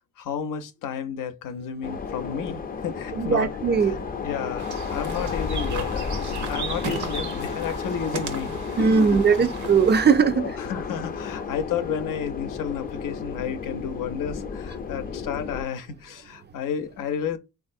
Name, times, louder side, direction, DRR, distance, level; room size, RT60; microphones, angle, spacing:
voice 1, 0.2-3.5 3.8-9.4 10.4-17.4, left 7 dB, 90° left, 0.5 m, -32 dB
sound 1, 1.8-15.6, left 5 dB, 30° left, 0.4 m, -33 dB
voice 2, 3.2-4.0 8.8-10.5, right 5 dB, 35° right, 0.4 m, -19 dB
sound 2, 4.6-10.0, right 5 dB, 65° right, 0.7 m, -35 dB
3.3 x 2.4 x 2.5 m
cardioid pair, 70°, 31 cm